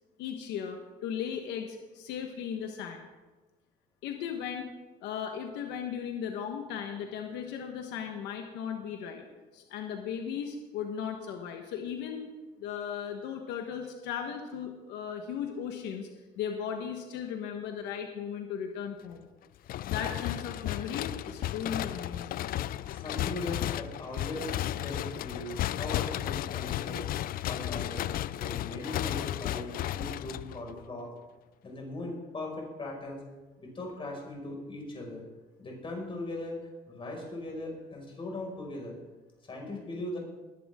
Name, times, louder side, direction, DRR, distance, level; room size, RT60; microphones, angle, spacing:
voice 1, 0.2-3.0 4.0-4.7 5.0-9.2 9.5-16.1 16.4-19.3 19.9-22.5, left 8 dB, 90° left, 4 dB, 1.3 m, -37 dB
sound 1, 19.7-30.9, left 13 dB, 60° left, 0.4 m, -34 dB
voice 2, 22.9-27.0 27.4-31.1 31.6-33.2 33.6-35.2 35.6-39.0 39.4-40.2, left 2 dB, 30° left, -1 dB, 5.6 m, -39 dB
20.0 x 12.0 x 3.7 m, 1.2 s
cardioid pair, 110°, 17 cm